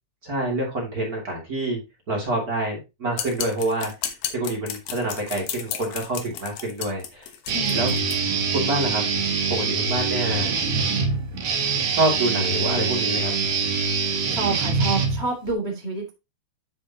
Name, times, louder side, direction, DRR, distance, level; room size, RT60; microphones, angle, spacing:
voice 1, 0.2-1.8 2.1-3.9 4.3-7.3 7.7-7.9 8.5-9.0 9.5-10.5 11.9-13.3, right 2 dB, 30° right, 1.8 m, -26 dB
sound 1, 3.1-8.2, left 9 dB, 70° left, 2.3 m, -33 dB
voice 2, 7.5-8.0 14.1-16.1, right 3 dB, 45° left, 0.8 m, -28 dB
Guitar, 7.5-15.5, right 5 dB, 75° right, 1.5 m, -24 dB
12.0 x 5.6 x 2.9 m
omnidirectional pair, 5.5 m